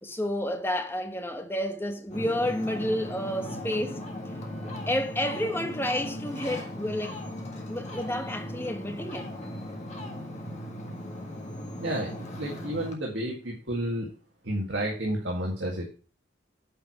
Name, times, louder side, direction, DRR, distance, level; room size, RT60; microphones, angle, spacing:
voice 1, 0.0-4.0 4.9-7.2 7.7-9.3, left 1 dB, 10° left, 1.1 m, -30 dB
Ocean, 2.1-12.9, left 1 dB, 35° left, 1.7 m, -38 dB
voice 2, 11.8-14.1 14.4-15.8, right 1 dB, 70° right, 1.9 m, -31 dB
8.9 x 4.8 x 5.7 m
head